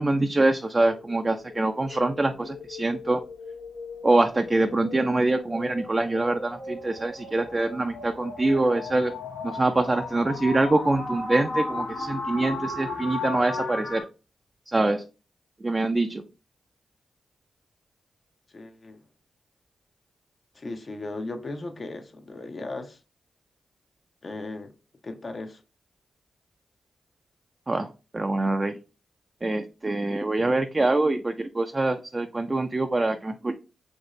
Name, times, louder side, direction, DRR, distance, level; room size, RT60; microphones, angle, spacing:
voice 1, 0.0-3.2 4.0-9.1 9.4-14.1 14.7-15.0 15.6-16.2 27.7-28.8 29.4-33.5, right 2 dB, 30° right, 0.3 m, -24 dB
sound 1, 0.9-14.0, left 3 dB, 85° left, 0.8 m, -36 dB
voice 2, 18.5-19.0 20.5-23.0 24.2-24.7 25.0-25.6, left 2 dB, 50° left, 0.5 m, -36 dB
2.7 x 2.6 x 3.0 m
supercardioid pair, 45°, 0 cm